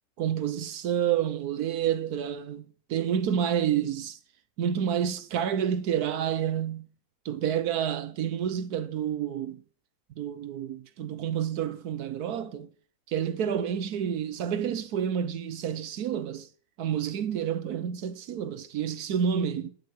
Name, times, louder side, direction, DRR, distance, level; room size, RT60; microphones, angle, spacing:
voice 1, 0.2-4.2 4.6-6.9 7.2-9.6 10.2-12.7 13.1-16.5 16.8-19.7, right 9 dB, 75° right, 1.3 m, -29 dB
10.5 x 8.1 x 6.4 m
omnidirectional pair, 1.7 m